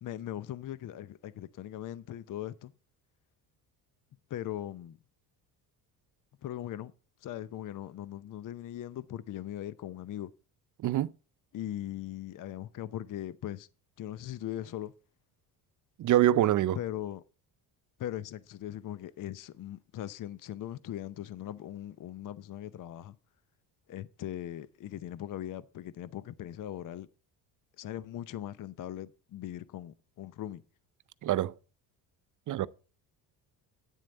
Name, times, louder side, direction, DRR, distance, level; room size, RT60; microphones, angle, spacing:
voice 1, 0.0-2.7 4.3-5.0 6.4-6.9 7.2-10.3 11.5-13.7 14.0-14.9 16.8-17.2 18.0-23.2 23.9-27.1 27.8-30.6, left 12 dB, 45° left, 0.7 m, -39 dB
voice 2, 16.0-16.8 31.2-31.5 32.5-32.7, right 13 dB, 45° right, 0.6 m, -25 dB
10.0 x 7.5 x 4.1 m
supercardioid pair, 75°, 44 cm